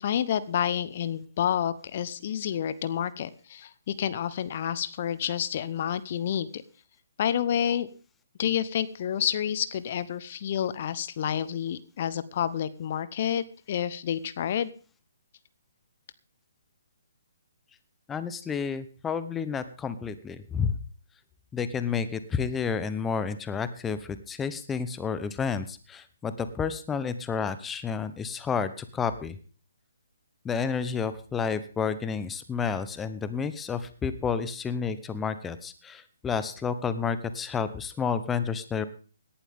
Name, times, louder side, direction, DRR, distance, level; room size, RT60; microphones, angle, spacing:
voice 1, 0.0-6.6 7.2-7.9 8.4-14.7, left 9 dB, 45° left, 15 dB, 1.0 m, -29 dB
voice 2, 18.1-20.8 21.5-29.4 30.4-38.8, left 6 dB, 10° left, 12 dB, 0.9 m, -30 dB
18.0 x 11.5 x 3.6 m, 0.37 s
figure-of-eight pair, 140°, 0 cm